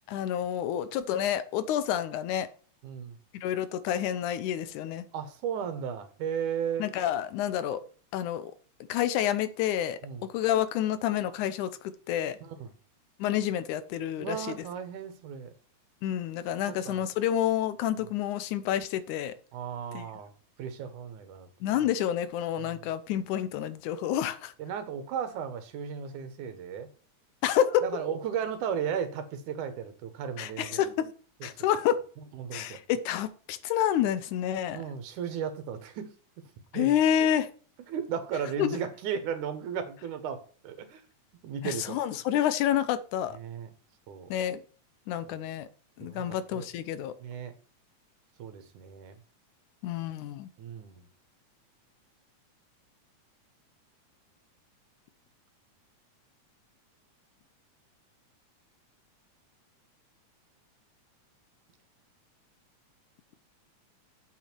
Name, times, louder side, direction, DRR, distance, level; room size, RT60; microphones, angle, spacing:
voice 1, 0.1-2.5 3.4-5.1 6.8-7.8 8.1-8.5 8.9-12.4 13.2-14.7 16.0-19.3 19.9-20.1 21.6-24.5 27.4-27.8 30.4-31.1 31.4-32.0 32.5-34.8 36.7-37.5 38.6-38.7 41.6-43.4 44.3-44.6 45.1-45.7 46.0-47.1 49.8-50.5, left 10 dB, 80° left, 2.2 m, -29 dB
voice 2, 2.8-3.2 5.1-6.9 10.0-10.3 12.4-12.7 14.2-15.5 16.7-17.0 19.5-20.3 20.6-21.5 22.6-22.8 24.6-26.9 27.8-30.8 31.4-31.5 32.3-32.8 34.7-36.1 36.7-37.0 37.9-41.0 41.4-42.0 43.3-43.7 44.1-44.3 46.0-46.7 47.2-47.5 48.4-49.2 50.6-51.1, right 7 dB, 80° right, 2.7 m, -35 dB
7.9 x 7.4 x 4.5 m
omnidirectional pair, 3.5 m